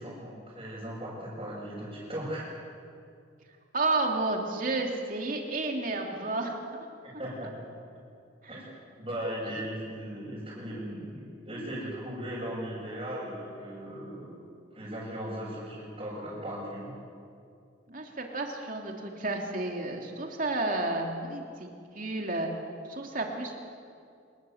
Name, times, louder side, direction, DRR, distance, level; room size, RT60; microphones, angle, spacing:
voice 1, 0.0-2.4 7.0-7.5 8.5-14.4 14.7-16.9, equal, 25° right, -10 dB, 7.1 m, -38 dB
voice 2, 3.7-6.6 8.4-8.5 17.9-22.5 22.9-23.6, right 2 dB, 40° right, 1 dB, 3.1 m, -31 dB
27.0 x 20.0 x 8.0 m, 2.4 s
head